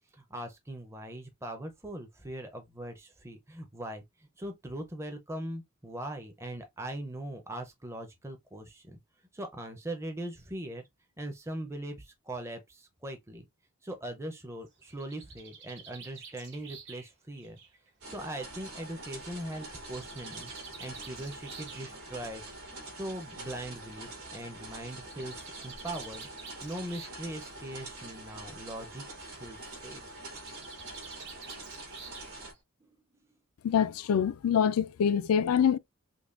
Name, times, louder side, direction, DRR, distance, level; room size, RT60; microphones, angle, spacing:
voice 1, 0.1-9.0 9.3-10.8 11.2-13.5 13.8-17.6 18.1-20.5 20.8-26.3 26.6-29.0 29.4-30.0 32.8-33.0, right 1 dB, 10° right, 0.5 m, -41 dB
Bird, 14.7-18.4 19.5-21.9 23.0-23.1 23.4-23.5 23.7-23.8 24.9-27.3 27.6-28.0 30.1-32.6, right 6 dB, 55° right, 1.2 m, -49 dB
sound 1, 18.0-32.5, right 2 dB, 80° right, 2.4 m, -45 dB
voice 2, 33.6-35.8, left 8 dB, 80° left, 0.3 m, -25 dB
5.2 x 2.2 x 2.4 m
head